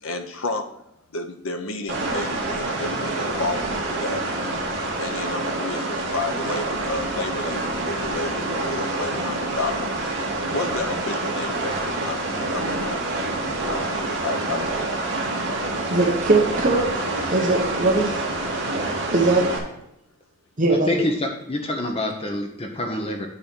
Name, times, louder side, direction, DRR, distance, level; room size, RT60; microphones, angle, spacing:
voice 1, 0.0-0.7 1.1-4.2 5.0-10.1 10.5-13.0 13.7-15.2, left 2 dB, 65° left, 7 dB, 1.0 m, -31 dB
sound 1, 1.9-19.6, right 2 dB, 55° right, 2.0 m, -27 dB
voice 2, 15.9-17.0 17.3-18.1 19.1-19.5 20.6-20.9, right 2 dB, 35° right, -1 dB, 1.0 m, -20 dB
voice 3, 20.7-23.3, left 1 dB, 25° left, 3 dB, 0.8 m, -26 dB
8.9 x 4.3 x 6.1 m, 0.80 s
head